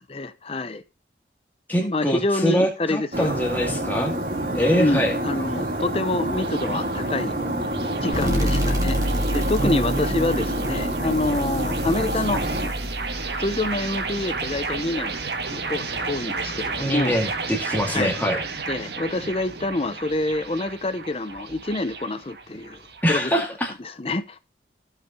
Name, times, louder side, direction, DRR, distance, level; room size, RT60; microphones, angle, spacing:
voice 1, 0.1-0.8 1.8-3.4 4.8-7.4 8.0-9.0 9.3-12.4 13.4-15.2 15.5-17.2 17.9-18.1 18.7-23.4 24.0-24.4, left 2 dB, 35° left, 0.6 m, -27 dB
voice 2, 1.7-4.1 4.5-5.1 9.6-10.3 16.8-18.4 23.0-23.7, equal, 10° left, 2.2 m, -24 dB
sound 1, 3.1-12.7, right 1 dB, 50° right, 2.8 m, -27 dB
sound 2, 4.4-23.4, right 4 dB, 70° right, 1.6 m, -34 dB
sound 3, 8.1-15.4, equal, 20° right, 2.2 m, -29 dB
16.0 x 5.8 x 2.7 m
head